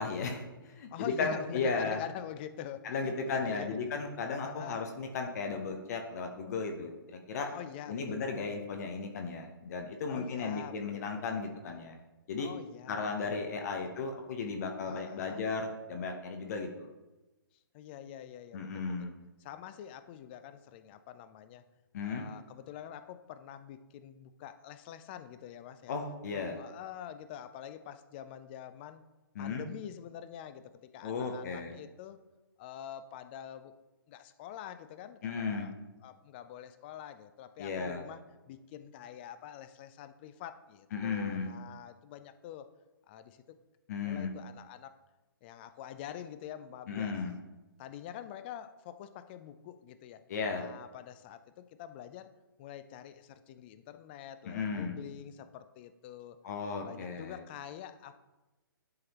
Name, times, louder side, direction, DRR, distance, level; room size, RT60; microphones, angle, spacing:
voice 1, 0.0-2.0 2.8-7.5 7.9-12.0 12.3-12.5 12.9-16.9 18.5-19.1 21.9-22.2 25.9-26.6 29.4-29.6 31.0-31.8 35.2-35.7 37.6-38.0 40.9-41.5 43.9-44.3 46.9-47.3 50.3-50.6 54.5-55.0 56.4-57.4, left 4 dB, 45° left, 3 dB, 0.8 m, -35 dB
voice 2, 0.9-3.8 4.4-4.9 7.5-8.2 10.1-11.5 12.4-13.9 14.9-15.4 17.7-19.1 19.4-21.6 22.0-25.9 26.3-29.1 29.4-32.2 32.6-33.7 34.1-35.7 36.0-42.7 43.1-43.6 44.0-45.0 45.4-47.2 47.8-50.2 50.5-52.3 52.6-56.4 56.8-58.2, left 10 dB, 25° left, 11 dB, 0.4 m, -46 dB
11.0 x 3.8 x 2.9 m, 1.1 s
hypercardioid pair, 140°, 12 cm